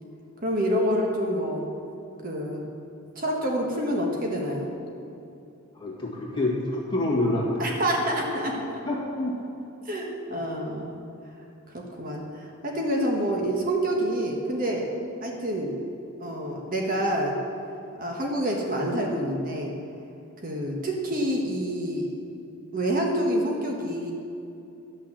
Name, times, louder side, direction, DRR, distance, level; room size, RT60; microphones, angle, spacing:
voice 1, 0.4-1.7 2.2-2.6 3.1-4.7 7.6-8.8 9.8-11.0 11.7-14.9 15.2-15.7 16.2-17.4 18.0-19.7 20.4-22.1 22.7-24.1, equal, 40° right, 0 dB, 1.3 m, -27 dB
voice 2, 5.7-7.8 8.9-9.3, left 1 dB, 20° left, -4 dB, 2.0 m, -27 dB
11.5 x 6.3 x 7.5 m, 2.7 s
head